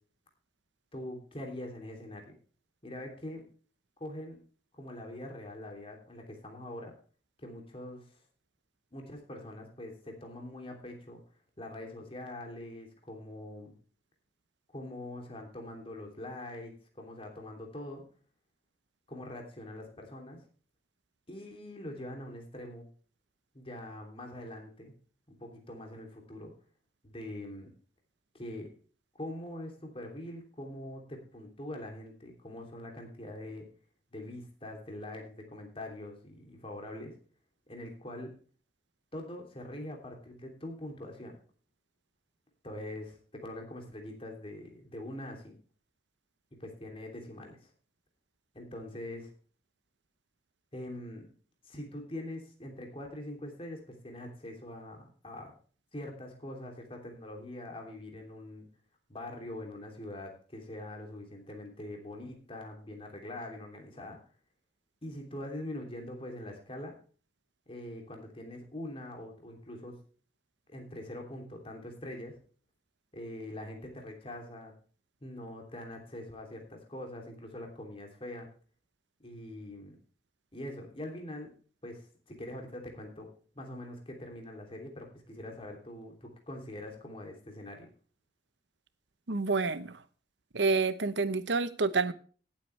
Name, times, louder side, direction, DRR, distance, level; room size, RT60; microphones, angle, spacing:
voice 1, 0.9-2.3 2.8-3.4 4.0-4.4 4.7-6.9 7.4-8.1 8.9-11.2 11.6-13.7 14.7-18.0 19.1-20.4 21.3-22.9 23.5-25.0 25.3-26.5 27.0-27.7 28.3-28.7 29.2-33.7 34.1-37.2 37.7-38.3 39.1-41.4 42.6-45.6 46.6-47.7 48.5-49.3 50.7-51.3 51.6-55.6 55.9-58.7 59.1-64.2 65.0-66.9 67.7-69.9 70.7-72.4 73.1-74.7 75.2-78.5 79.2-80.0 80.5-81.5 81.8-83.3 83.5-87.9, left 1 dB, 30° left, 2 dB, 3.0 m, -43 dB
voice 2, 89.3-90.0 90.5-92.1, right 4 dB, 90° right, 14 dB, 0.9 m, -28 dB
17.5 x 8.4 x 3.3 m, 0.41 s
head